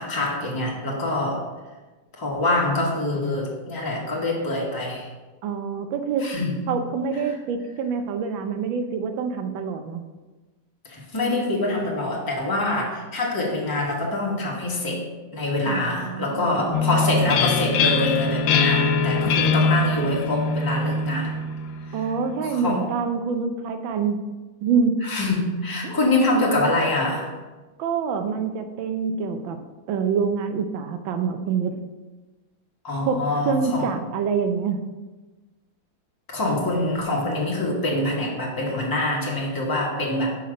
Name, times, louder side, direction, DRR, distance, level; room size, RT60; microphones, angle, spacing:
voice 1, 0.0-1.5 2.2-5.1 6.2-6.6 10.8-15.0 15.3-21.3 21.9-22.0 22.4-22.8 25.0-27.3 32.8-33.9 36.3-40.4, left 2 dB, 15° left, -3 dB, 1.1 m, -25 dB
voice 2, 5.4-6.3 6.7-10.0 15.7-16.7 21.9-24.2 24.6-25.1 25.8-26.0 27.8-29.6 29.9-31.8 33.1-34.8, right 5 dB, 85° right, 7 dB, 1.5 m, -26 dB
sound 1, 16.7-22.3, left 4 dB, 85° left, 1.4 m, -23 dB
5.8 x 5.7 x 5.0 m, 1.2 s
omnidirectional pair, 2.1 m